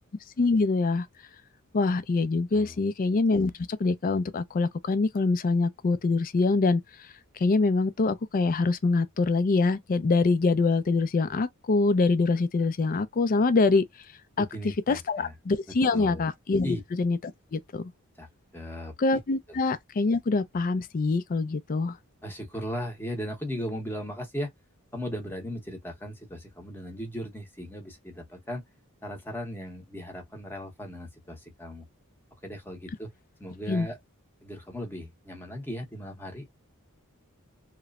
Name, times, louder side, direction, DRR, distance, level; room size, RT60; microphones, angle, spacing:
voice 1, 0.4-1.1 1.7-3.5 3.8-6.8 7.4-13.9 14.4-14.5 14.9-17.2 17.5-17.9 19.0-22.0 33.7-33.9, left 3 dB, 40° left, 0.4 m, -24 dB
voice 2, 14.4-15.3 15.9-16.3 16.6-16.8 18.2-18.3 18.5-18.9 19.5-19.6 22.2-24.5 24.9-28.6 29.0-31.9 32.4-33.1 33.4-34.0 34.4-36.5, equal, 10° left, 0.8 m, -37 dB
2.9 x 2.1 x 2.3 m
head